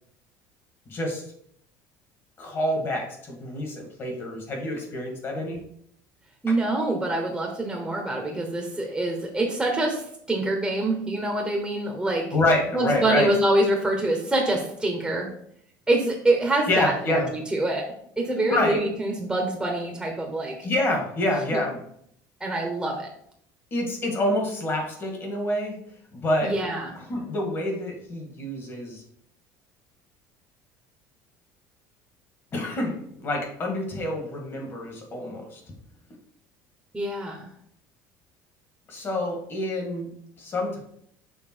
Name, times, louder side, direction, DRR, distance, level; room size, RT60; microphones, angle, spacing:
voice 1, 0.9-1.2 2.4-5.6 12.3-13.3 16.7-17.3 18.5-18.9 20.6-21.8 23.7-25.8 26.1-26.5 27.1-29.0 32.5-35.6 38.9-40.8, left 1 dB, 30° left, 1 dB, 1.8 m, -27 dB
voice 2, 6.4-12.2 12.7-15.3 15.9-17.8 18.2-20.5 22.4-23.1 26.4-26.9 36.9-37.5, right 2 dB, 5° right, 1 dB, 1.0 m, -25 dB
6.8 x 3.5 x 4.4 m, 0.68 s
cardioid pair, 145°, 7 cm